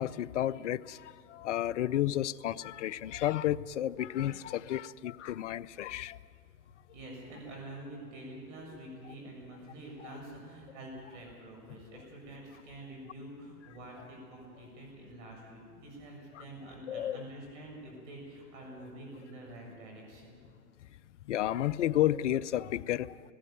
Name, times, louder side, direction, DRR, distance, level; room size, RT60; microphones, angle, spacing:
voice 1, 0.0-6.2 16.9-17.2 21.3-23.2, left 12 dB, 50° left, 18 dB, 0.6 m, -32 dB
voice 2, 6.9-20.4, right 1 dB, 45° right, 0 dB, 7.3 m, -47 dB
19.0 x 16.5 x 9.3 m, 2.2 s
hypercardioid pair, 130°, 48 cm